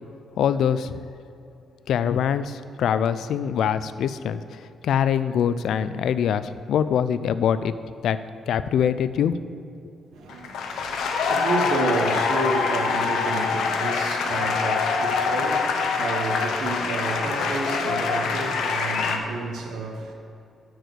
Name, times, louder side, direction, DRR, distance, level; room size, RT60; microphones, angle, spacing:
voice 1, 0.4-1.0 1.9-7.7 8.0-8.2 8.5-9.4, left 8 dB, 70° left, 0.3 m, -24 dB
voice 2, 10.1-20.1, right 2 dB, 85° right, 1.3 m, -30 dB
sound 1, 10.3-19.2, left 5 dB, 85° left, 0.8 m, -25 dB
10.5 x 4.7 x 6.7 m
cardioid pair, 170°, 0 cm